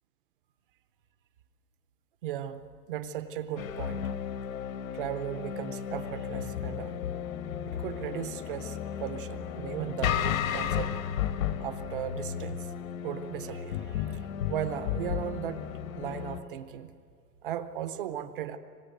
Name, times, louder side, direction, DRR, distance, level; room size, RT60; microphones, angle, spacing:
voice 1, 2.2-2.6 2.9-4.1 4.9-7.0 7.7-11.0 11.6-12.7 13.0-15.6 16.0-16.9 17.4-18.6, right 10 dB, 35° right, 11 dB, 0.8 m, -37 dB
sound 1, 3.6-16.4, left 9 dB, 55° left, 1.3 m, -34 dB
24.5 x 20.0 x 9.2 m, 2.2 s
supercardioid pair, 175°, 49 cm